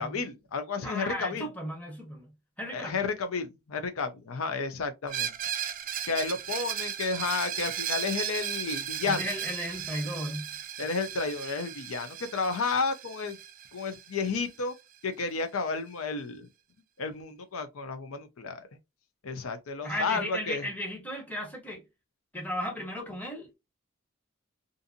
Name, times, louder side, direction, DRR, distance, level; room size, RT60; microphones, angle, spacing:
voice 1, 0.0-1.5 2.7-5.3 6.1-9.2 10.8-13.4 13.7-14.7 15.0-16.5 17.0-18.7 19.2-20.6, left 4 dB, 85° left, 0.5 m, -32 dB
voice 2, 0.8-2.3 2.6-3.0 9.0-10.5 19.8-21.8 22.3-23.5, equal, 5° left, 0.8 m, -35 dB
Screech, 5.1-14.7, right 10 dB, 40° right, 0.3 m, -36 dB
2.6 x 2.5 x 2.6 m
head